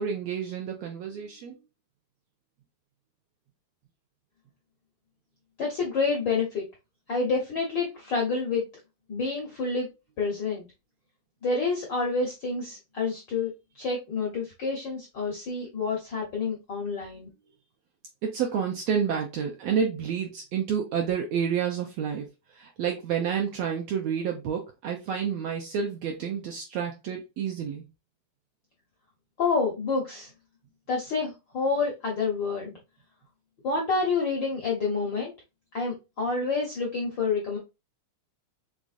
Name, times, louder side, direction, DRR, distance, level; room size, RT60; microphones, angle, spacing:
voice 1, 0.0-1.6 18.2-27.8, right 7 dB, 75° right, 2 dB, 1.6 m, -29 dB
voice 2, 5.6-6.6 7.1-8.6 9.1-9.9 10.2-10.6 11.4-17.3 29.4-30.3 30.9-32.8 33.6-35.3 35.7-37.6, left 4 dB, 65° left, -1 dB, 1.1 m, -28 dB
5.2 x 3.5 x 2.5 m, 0.26 s
omnidirectional pair, 3.7 m